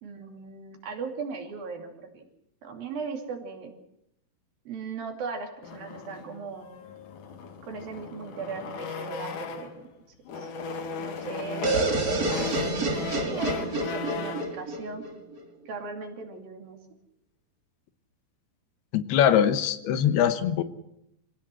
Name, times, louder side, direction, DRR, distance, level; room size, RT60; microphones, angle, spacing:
voice 1, 0.0-2.3 2.6-3.7 4.7-6.7 7.6-9.8 10.4-10.5 11.0-11.8 12.4-15.0 15.7-16.8, right 5 dB, 65° right, 4 dB, 4.4 m, -38 dB
sound 1, 5.6-9.8 10.2-14.6, left 5 dB, 55° left, 3.1 m, -37 dB
sound 2, 11.6-15.4, right 2 dB, 25° right, 2.5 m, -28 dB
voice 2, 18.9-20.6, left 9 dB, 80° left, 11 dB, 3.1 m, -22 dB
25.5 x 17.0 x 7.7 m, 0.78 s
omnidirectional pair, 4.6 m